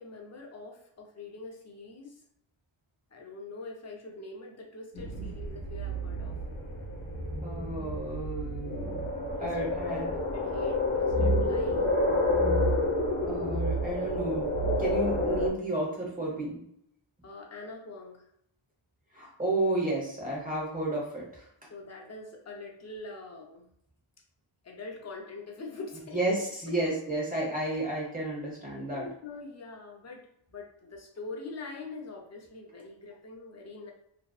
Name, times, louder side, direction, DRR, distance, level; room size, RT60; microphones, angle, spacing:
voice 1, 0.0-2.2 3.1-6.3 9.4-11.9 17.2-18.3 21.7-23.7 24.6-26.4 26.8-26.9 28.9-33.9, left 3 dB, 35° left, 1 dB, 0.5 m, -44 dB
sound 1, 4.9-15.5, left 1 dB, 70° left, 0.9 m, -29 dB
voice 2, 7.4-9.0 9.4-10.1 13.3-16.6 19.1-21.5 26.1-29.1, right 2 dB, 15° right, -4 dB, 0.9 m, -32 dB
2.6 x 2.1 x 2.3 m, 0.72 s
wide cardioid pair, 120°, 50 cm